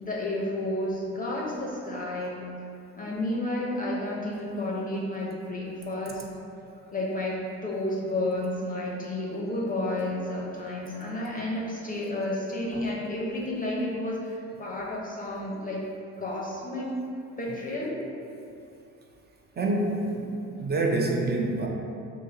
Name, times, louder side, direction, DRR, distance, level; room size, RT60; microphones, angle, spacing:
voice 1, 0.0-2.5 2.9-6.2 6.9-7.4 7.6-15.8 16.2-17.0 17.4-18.0, left 1 dB, 20° left, -4 dB, 0.6 m, -31 dB
voice 2, 19.6-20.3 20.6-21.7, right 2 dB, 25° right, 0 dB, 0.4 m, -26 dB
2.8 x 2.5 x 3.8 m, 2.7 s
hypercardioid pair, 60°, 38 cm